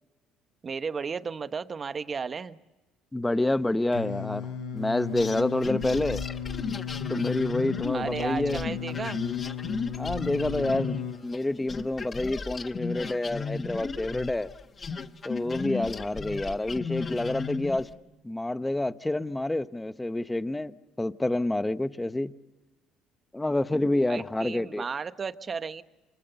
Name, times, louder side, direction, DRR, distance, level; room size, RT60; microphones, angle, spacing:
voice 1, 0.6-2.6 7.9-9.2 15.7-15.9 24.1-25.8, right 5 dB, 35° right, 1.1 m, -34 dB
voice 2, 3.1-6.2 7.1-8.6 10.0-11.0 11.2-14.5 15.2-17.9 18.2-22.3 23.3-24.8, left 2 dB, 10° left, 0.9 m, -28 dB
Singing, 3.9-11.1, left 8 dB, 80° left, 3.9 m, -35 dB
sound 1, 5.1-11.4 11.7-17.9, left 5 dB, 30° left, 1.1 m, -35 dB
28.5 x 24.5 x 6.9 m
cardioid pair, 100°, 0 cm